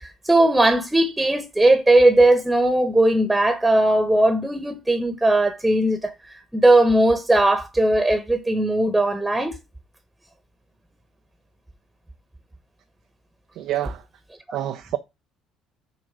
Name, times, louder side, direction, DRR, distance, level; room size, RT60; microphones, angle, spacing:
voice 1, 0.0-9.6, right 1 dB, 10° right, 1.1 m, -18 dB
voice 2, 13.6-14.0 14.5-15.0, right 12 dB, 60° right, 0.5 m, -27 dB
6.4 x 3.7 x 4.9 m
hypercardioid pair, 55°, 0 cm